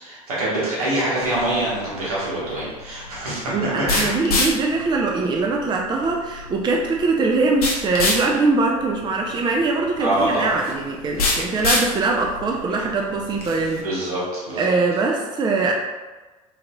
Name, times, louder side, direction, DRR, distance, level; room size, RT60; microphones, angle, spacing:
voice 1, 0.0-3.5 3.9-4.1 10.0-10.5 13.8-14.7, right 1 dB, 80° right, -8 dB, 1.3 m, -25 dB
sound 1, 1.2-13.8, left 3 dB, 80° left, 0.6 m, -28 dB
voice 2, 3.5-13.8 14.6-15.7, right 3 dB, 25° right, 1 dB, 0.4 m, -22 dB
3.9 x 2.8 x 2.3 m, 1.2 s
figure-of-eight pair, 60°, 19 cm